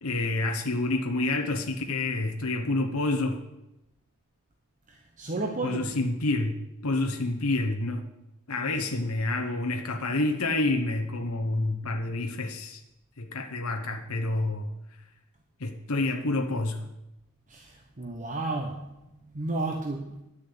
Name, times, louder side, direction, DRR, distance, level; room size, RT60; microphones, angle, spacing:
voice 1, 0.0-3.4 5.6-6.6 6.8-8.1 8.5-12.8 13.2-14.7 15.6-16.9, left 2 dB, 65° left, 4 dB, 1.0 m, -28 dB
voice 2, 4.9-5.8 17.5-18.8 19.3-20.2, right 2 dB, 35° right, 2 dB, 1.1 m, -32 dB
11.5 x 6.9 x 8.6 m, 0.91 s
head